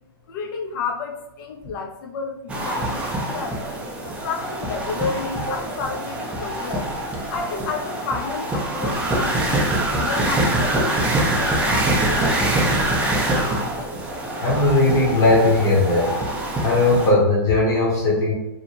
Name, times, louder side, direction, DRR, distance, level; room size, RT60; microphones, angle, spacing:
voice 1, 0.3-3.0 3.3-3.6 4.0-6.9 7.3-12.0, left 5 dB, 60° left, 3 dB, 0.4 m, -31 dB
sound 1, 2.5-17.1, right 1 dB, 10° right, 0.4 m, -24 dB
voice 2, 14.4-16.2 16.6-18.3, left 2 dB, 25° left, -5 dB, 0.8 m, -18 dB
2.6 x 2.0 x 2.9 m, 0.94 s
hypercardioid pair, 140°, 13 cm